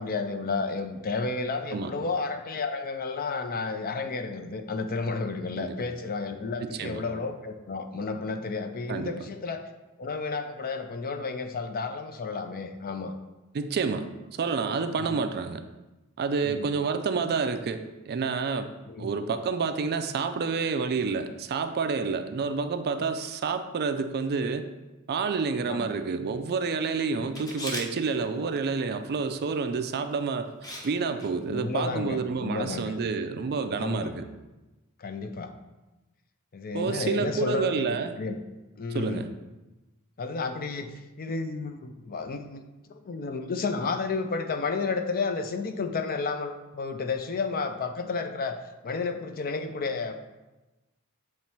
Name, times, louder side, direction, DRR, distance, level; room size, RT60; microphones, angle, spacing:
voice 1, 0.0-9.7 10.0-13.1 15.1-15.2 16.4-16.7 18.9-19.1 25.7-25.9 27.2-27.3 31.4-32.9 33.7-34.2 35.0-35.5 36.5-38.4 38.8-39.3 40.2-42.6 42.9-48.6 48.8-50.1, left 4 dB, 40° left, 7 dB, 0.5 m, -32 dB
voice 2, 6.6-7.0 8.9-9.1 13.5-14.1 14.4-15.6 16.2-18.7 19.0-24.7 25.1-30.5 30.8-34.2 36.7-38.2 38.9-39.3, right 5 dB, 45° right, 8 dB, 0.4 m, -29 dB
Camera, 27.3-27.9 29.9-30.1 30.6-30.9 31.2-31.3, left 1 dB, 15° left, 0.8 m, -36 dB
7.2 x 3.1 x 4.4 m, 1.1 s
head